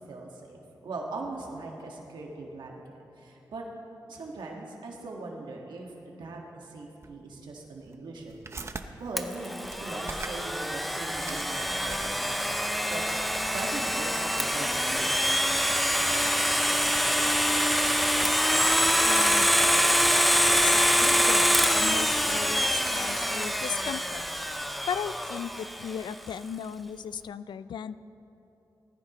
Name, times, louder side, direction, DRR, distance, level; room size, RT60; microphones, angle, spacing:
voice 1, 0.1-3.6 4.1-8.4 9.0-13.0 13.4-15.1, right 3 dB, 80° right, -1 dB, 1.6 m, -40 dB
sound 1, 7.0-7.1 7.8-8.8 9.6-10.5 10.8-10.9 11.1-12.4, right 3 dB, 35° right, 0.7 m, -41 dB
Domestic sounds home sounds, 9.2-25.9, equal, ahead, 0.5 m, -25 dB
voice 2, 19.1-19.5 20.5-24.2 24.9-28.0, left 7 dB, 85° left, 15 dB, 0.4 m, -36 dB
19.0 x 14.0 x 3.0 m, 2.9 s
wide cardioid pair, 100°, 8 cm